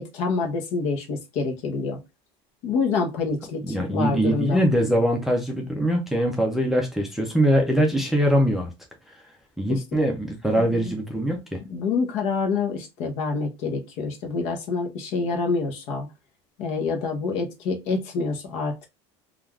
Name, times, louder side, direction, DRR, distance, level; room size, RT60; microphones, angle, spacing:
voice 1, 0.0-2.0 2.6-4.6 9.7-9.8 10.6-10.9 11.7-16.1 16.6-18.9, left 4 dB, 55° left, 0.8 m, -27 dB
voice 2, 3.6-8.7 9.1-9.2 9.6-11.6, equal, ahead, 0.4 m, -22 dB
3.2 x 2.4 x 2.3 m
cardioid pair, 165°, 14 cm